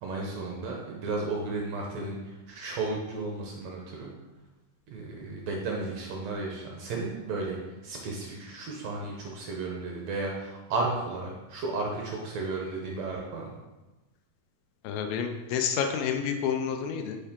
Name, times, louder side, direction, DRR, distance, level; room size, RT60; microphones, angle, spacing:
voice 1, 0.0-4.1 4.9-7.6 7.8-13.5, right 3 dB, 75° right, -1 dB, 1.6 m, -33 dB
voice 2, 14.8-17.2, left 7 dB, 85° left, 5 dB, 2.4 m, -29 dB
9.9 x 4.6 x 3.6 m, 1.1 s
omnidirectional pair, 4.3 m